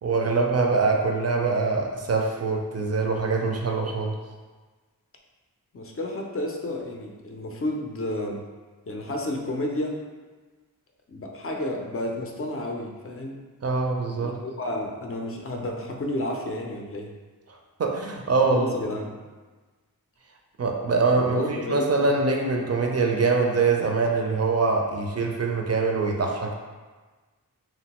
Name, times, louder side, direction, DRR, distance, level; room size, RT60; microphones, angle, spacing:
voice 1, 0.0-4.1 13.6-14.4 17.8-18.7 20.6-26.6, right 4 dB, 45° right, 1 dB, 0.4 m, -24 dB
voice 2, 5.7-8.4 8.9-10.0 11.1-13.4 14.2-17.1 18.5-19.2 21.3-22.1, left 1 dB, 40° left, 1 dB, 0.5 m, -31 dB
2.9 x 2.1 x 2.9 m, 1.3 s
wide cardioid pair, 50°, 35 cm